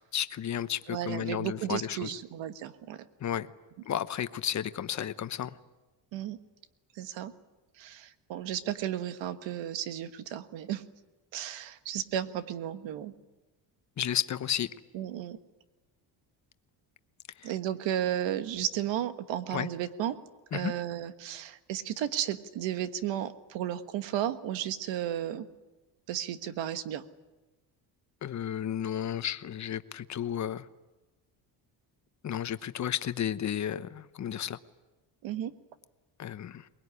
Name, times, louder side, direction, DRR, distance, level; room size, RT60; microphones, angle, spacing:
voice 1, 0.1-2.1 3.2-3.5 3.9-5.6 14.0-14.7 17.4-17.5 19.5-19.7 20.5-20.7 28.2-30.7 32.2-34.6 36.2-36.7, left 10 dB, 40° left, 12 dB, 1.0 m, -33 dB
voice 2, 0.9-3.0 6.1-6.4 6.9-7.3 7.8-10.8 11.3-13.1 14.9-15.4 17.4-20.2 20.5-25.5 26.1-27.0 35.2-35.5, right 11 dB, 85° right, 10 dB, 1.5 m, -34 dB
23.0 x 20.5 x 9.8 m, 1.1 s
cardioid pair, 115°, 43 cm